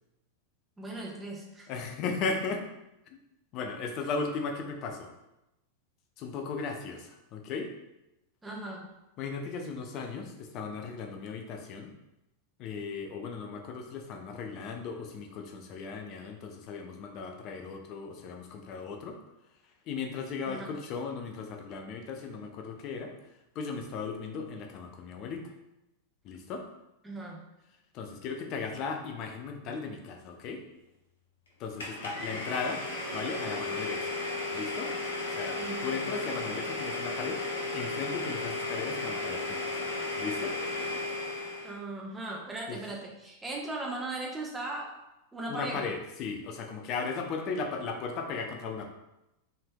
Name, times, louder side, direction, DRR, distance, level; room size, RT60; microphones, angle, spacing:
voice 1, 0.8-1.7 8.4-8.8 20.5-20.7 27.0-27.4 35.6-35.8 41.6-44.9 45.3-45.8, right 2 dB, 10° right, -3 dB, 0.9 m, -38 dB
voice 2, 1.7-2.6 3.1-3.2 3.5-5.1 6.2-7.7 9.2-11.9 12.6-19.2 19.9-23.1 23.5-25.4 26.2-26.6 27.9-30.6 31.6-32.8 33.1-34.1 34.5-34.9 35.3-37.4 37.7-39.9 40.2-40.6 42.7-42.8 45.5-48.9, left 4 dB, 40° left, 4 dB, 0.6 m, -36 dB
Domestic sounds home sounds, 31.8-41.8, left 2 dB, 65° left, 1.0 m, -34 dB
5.5 x 3.4 x 2.2 m, 0.91 s
figure-of-eight pair, 90°, 0 cm